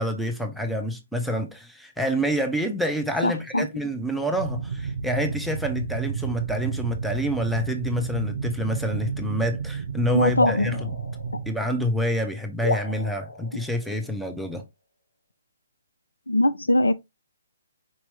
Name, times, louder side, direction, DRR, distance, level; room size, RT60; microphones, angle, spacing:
voice 1, 0.0-11.0 11.5-14.6, equal, ahead, 0.8 m, -27 dB
voice 2, 3.2-3.7 10.1-10.7 16.3-16.9, left 1 dB, 80° left, 0.6 m, -21 dB
sound 1, 4.4-11.5, right 5 dB, 70° right, 0.5 m, -31 dB
sound 2, 10.4-12.0 12.6-14.3, left 2 dB, 60° left, 2.5 m, -32 dB
5.2 x 2.9 x 3.4 m
figure-of-eight pair, 135°, 0 cm